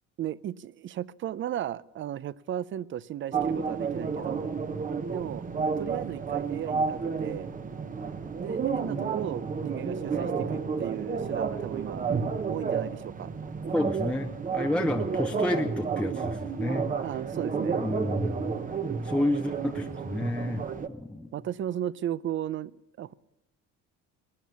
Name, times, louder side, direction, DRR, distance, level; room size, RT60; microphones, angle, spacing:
voice 1, 0.2-4.5 5.1-5.4 5.8-7.5 8.4-12.0 12.5-13.3 17.0-17.8 19.3-19.6 21.3-23.1, right 11 dB, 45° right, 20 dB, 0.5 m, -35 dB
sound 1, 3.3-20.9, right 5 dB, 30° right, 0.9 m, -31 dB
voice 2, 13.7-16.9 17.8-18.5 19.0-20.6 20.9-21.3, left 1 dB, 5° left, 3 dB, 0.7 m, -30 dB
19.5 x 10.5 x 6.9 m, 0.98 s
cardioid pair, 120°, 29 cm